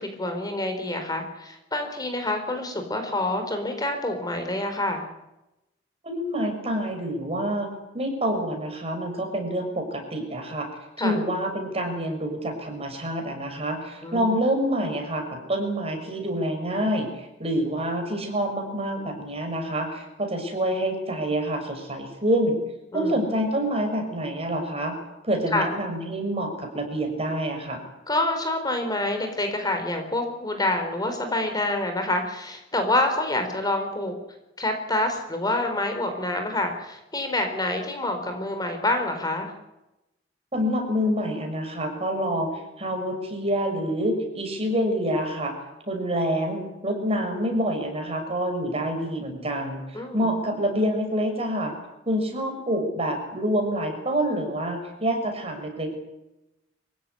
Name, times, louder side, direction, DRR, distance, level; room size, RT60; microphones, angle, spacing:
voice 1, 0.0-5.0 11.0-11.2 14.0-14.3 22.9-23.1 25.5-25.7 28.1-34.1 34.6-39.5 49.9-50.3, left 1 dB, 20° left, 5 dB, 4.2 m, -27 dB
voice 2, 6.0-7.7 7.9-10.7 11.0-22.5 22.9-24.9 25.2-27.8 40.5-45.5 45.9-51.7 52.1-56.0, equal, 35° right, 4 dB, 6.5 m, -27 dB
26.0 x 16.0 x 10.0 m, 0.93 s
head